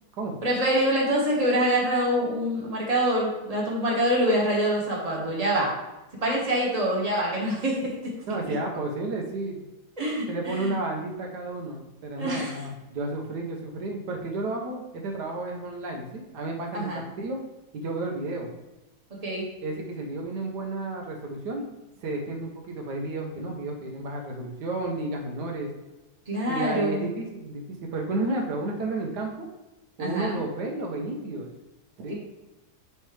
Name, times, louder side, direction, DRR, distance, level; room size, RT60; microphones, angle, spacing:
voice 1, 0.4-5.7 6.2-7.9 8.4-8.5 10.0-10.7 12.2-12.6 16.7-17.0 19.2-19.4 26.3-27.0 30.0-30.4 32.1-32.2, right 1 dB, 25° right, -4 dB, 1.6 m, -25 dB
voice 2, 8.3-9.6 10.3-17.4 17.7-18.5 19.6-21.7 22.0-25.7 26.4-29.5 30.0-31.5 32.0-32.1, right 2 dB, 80° right, 1 dB, 1.5 m, -32 dB
9.9 x 3.4 x 3.3 m, 1.0 s
omnidirectional pair, 1.7 m